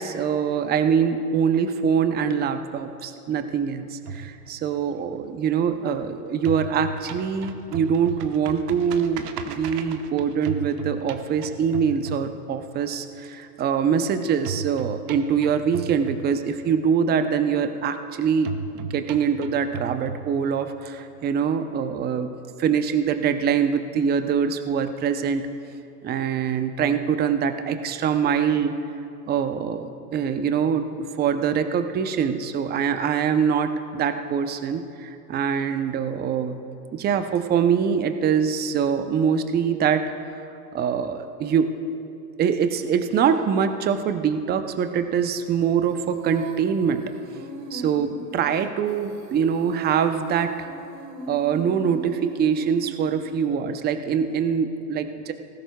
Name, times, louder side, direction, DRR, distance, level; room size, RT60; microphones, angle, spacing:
voice 1, 0.0-22.3 22.6-25.5 26.0-28.8 29.3-36.5 36.9-40.1 40.7-41.8 42.4-47.0 47.7-50.7 51.3-55.3, right 7 dB, 20° right, 9 dB, 0.7 m, -24 dB
sound 1, 4.0-6.0 6.3-12.8 14.5-16.8 18.5-20.8, right 6 dB, 75° right, 1.2 m, -35 dB
Female singing, 45.9-53.6, right 4 dB, 60° right, 1.7 m, -37 dB
19.0 x 16.0 x 2.3 m, 2.6 s
hypercardioid pair, 110°, 47 cm